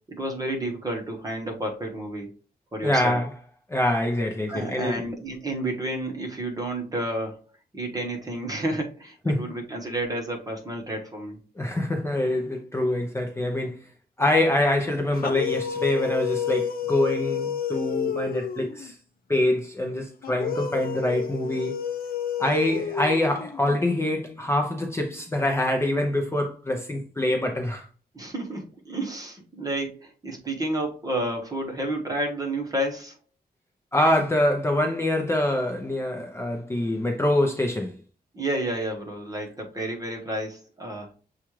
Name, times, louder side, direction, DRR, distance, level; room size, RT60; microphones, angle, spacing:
voice 1, 0.1-2.3 2.7-3.2 4.5-7.4 7.7-11.4 28.1-33.2 38.3-41.1, right 1 dB, 20° right, 1.0 m, -30 dB
voice 2, 2.8-3.3 3.7-5.0 9.3-9.5 11.6-13.8 14.2-19.0 19.3-21.8 22.4-27.9 33.9-38.0, left 1 dB, 15° left, 0.6 m, -25 dB
sound 1, 15.1-18.9 20.2-23.8, left 8 dB, 65° left, 0.5 m, -30 dB
7.0 x 2.4 x 3.1 m
wide cardioid pair, 175°, 16 cm